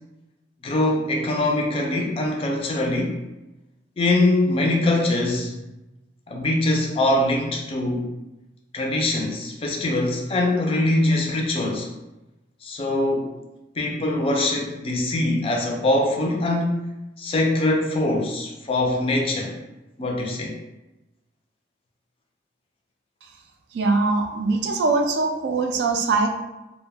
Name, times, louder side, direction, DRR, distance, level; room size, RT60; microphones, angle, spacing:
voice 1, 0.6-3.2 4.0-5.5 6.3-8.1 8.7-11.9 12.6-13.3 13.8-16.9 17.2-19.6 20.0-20.6, left 1 dB, 30° left, 1 dB, 0.3 m, -23 dB
voice 2, 23.7-26.3, right 3 dB, 65° right, 4 dB, 0.3 m, -22 dB
2.1 x 2.1 x 3.2 m, 1.0 s
head